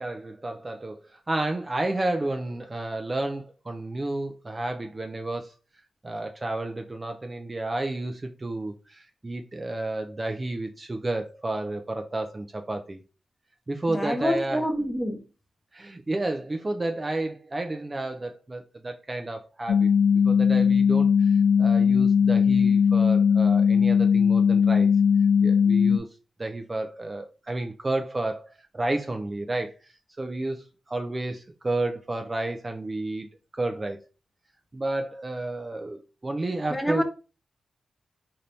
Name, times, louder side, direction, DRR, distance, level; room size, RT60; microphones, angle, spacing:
voice 1, 0.0-5.5 6.0-13.0 13.7-14.6 15.7-19.9 20.2-24.9 25.4-26.1 26.4-29.9 30.2-33.3 33.5-34.0 34.7-37.0, right 2 dB, 20° right, 0.4 m, -31 dB
voice 2, 13.9-15.2 36.7-37.0, equal, 5° left, 0.7 m, -27 dB
sound 1, 19.7-26.0, left 6 dB, 70° left, 0.3 m, -19 dB
4.0 x 2.7 x 3.3 m
wide cardioid pair, 120°, 0 cm